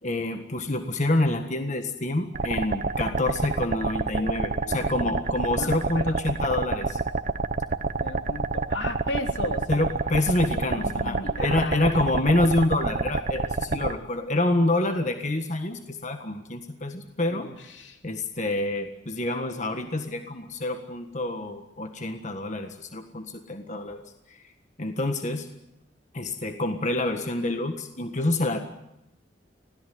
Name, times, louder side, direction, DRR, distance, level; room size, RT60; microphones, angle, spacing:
voice 1, 0.0-7.0 9.7-17.5 18.0-24.0 24.3-24.4 24.8-25.5 26.1-28.6, left 2 dB, 40° left, 6 dB, 1.6 m, -27 dB
sound 1, 2.3-13.9, right 3 dB, 45° right, 0.9 m, -28 dB
voice 2, 4.1-5.0 5.6-6.2 8.0-9.7 10.5-12.3 13.6-13.9 17.3-18.0, left 2 dB, 80° left, 5 dB, 2.9 m, -36 dB
25.0 x 17.5 x 9.4 m, 0.86 s
head